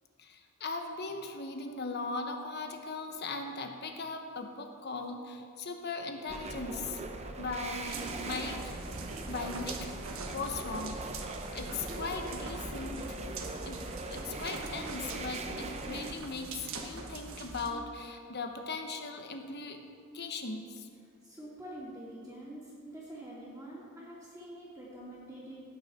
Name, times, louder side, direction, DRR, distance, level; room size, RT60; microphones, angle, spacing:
voice 1, 0.2-7.0 7.4-8.8 9.3-9.9 10.3-11.0 11.5-13.2 13.6-19.8 20.1-20.9, left 3 dB, 50° left, 4 dB, 1.2 m, -39 dB
sound 1, 6.3-16.1, right 2 dB, 30° right, 0.8 m, -40 dB
sound 2, 7.8-17.7, right 3 dB, 65° right, 1.3 m, -44 dB
voice 2, 21.2-25.6, right 1 dB, 10° right, -11 dB, 2.6 m, -46 dB
17.0 x 9.4 x 4.4 m, 2.3 s
head